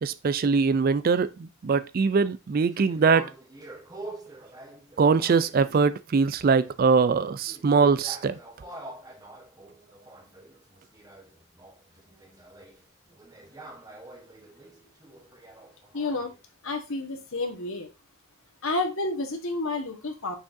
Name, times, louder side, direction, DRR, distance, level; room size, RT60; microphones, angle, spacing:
voice 1, 0.0-3.3 5.0-8.4, right 5 dB, 40° right, 0.3 m, -22 dB
sound 1, 2.7-6.1 6.4-16.4, right 2 dB, 15° right, 1.1 m, -46 dB
voice 2, 15.9-16.3 16.6-17.9 18.6-20.3, left 2 dB, 65° left, 1.4 m, -30 dB
6.3 x 6.1 x 2.6 m
head